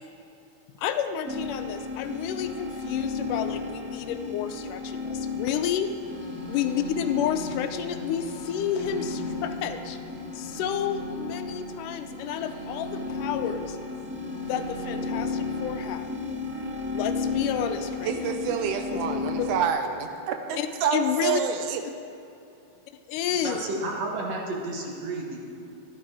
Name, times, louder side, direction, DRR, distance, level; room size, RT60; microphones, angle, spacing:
voice 1, 0.8-5.9 6.5-10.0 10.3-13.8 14.4-16.1 16.8-19.5 20.5-21.4 23.1-23.6, left 9 dB, 85° left, 8 dB, 2.2 m, -30 dB
sound 1, 1.2-19.7, left 4 dB, 5° right, 1.0 m, -34 dB
sound 2, 5.9-15.9, right 2 dB, 25° right, 2.6 m, -41 dB
voice 2, 18.0-21.8, right 7 dB, 80° right, 6 dB, 2.2 m, -28 dB
voice 3, 23.4-25.4, right 2 dB, 60° right, -1 dB, 2.4 m, -32 dB
12.5 x 11.0 x 4.8 m, 2.7 s
omnidirectional pair, 3.6 m